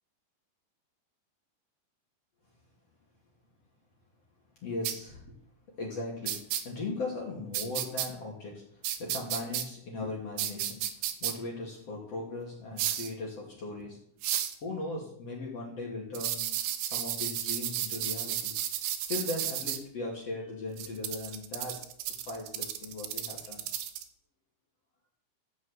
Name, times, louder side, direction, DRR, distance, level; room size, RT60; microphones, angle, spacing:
voice 1, 4.6-5.3 5.7-14.1 14.6-18.6 19.1-21.9 22.3-23.7, left 2 dB, 40° left, -3 dB, 3.0 m, -38 dB
sound 1, 4.9-5.0 6.3-6.6 7.5-8.1 8.8-9.7 10.4-11.3 12.8-13.1 14.2-14.6 16.2-19.8 20.8-24.1, right 11 dB, 80° right, 3.4 m, -33 dB
12.5 x 7.1 x 8.1 m, 0.64 s
omnidirectional pair, 5.5 m